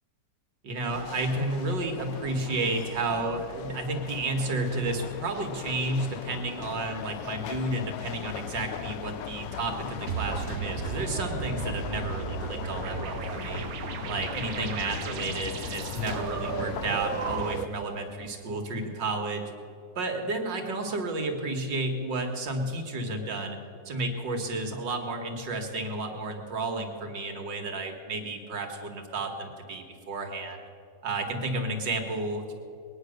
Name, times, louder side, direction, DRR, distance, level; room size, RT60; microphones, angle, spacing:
voice 1, 0.6-13.7 14.0-19.4 20.0-23.6 23.9-30.6 31.0-32.5, right 2 dB, 85° right, 3 dB, 2.5 m, -31 dB
sound 1, 0.9-17.7, left 9 dB, 90° left, 1.4 m, -38 dB
sound 2, 10.1-17.9, right 9 dB, 65° right, 1.0 m, -35 dB
21.5 x 9.9 x 6.6 m, 2.6 s
omnidirectional pair, 1.9 m